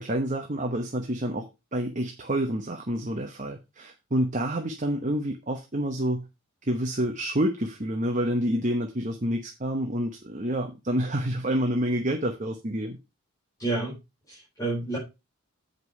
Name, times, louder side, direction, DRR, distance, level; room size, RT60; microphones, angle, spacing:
voice 1, 0.0-1.5 1.7-6.2 6.6-13.0, right 1 dB, 35° right, 4 dB, 1.0 m, -28 dB
voice 2, 13.6-13.9 14.3-15.0, right 2 dB, 15° left, -7 dB, 4.3 m, -29 dB
8.2 x 5.3 x 5.3 m, 0.25 s
head